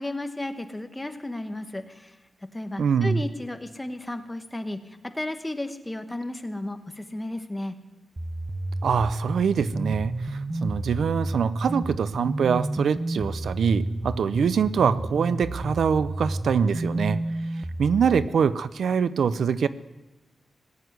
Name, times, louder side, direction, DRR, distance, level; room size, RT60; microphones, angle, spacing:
voice 1, 0.0-2.2 2.5-7.7, left 1 dB, 15° left, 7 dB, 1.1 m, -33 dB
voice 2, 2.8-3.2 8.8-17.2 17.8-19.7, right 6 dB, 90° right, 15 dB, 0.5 m, -24 dB
sound 1, 8.2-18.3, right 2 dB, 20° right, 0.8 m, -31 dB
18.5 x 8.2 x 9.4 m, 1.1 s
wide cardioid pair, 150°, 0 cm